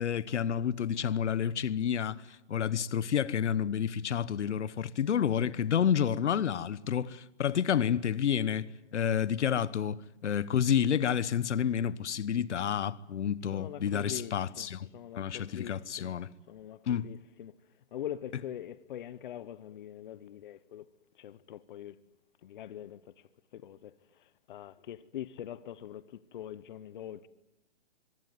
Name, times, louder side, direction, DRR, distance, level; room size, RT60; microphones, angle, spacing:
voice 1, 0.0-14.9 15.1-16.3 16.9-17.1, left 8 dB, 75° left, 1.2 m, -30 dB
voice 2, 13.5-16.2 16.5-17.5 17.9-20.9 21.2-22.0 22.4-23.1 23.5-23.9 24.2-27.3, left 11 dB, 45° left, 0.9 m, -43 dB
24.5 x 23.0 x 9.4 m
hypercardioid pair, 160°, 35 cm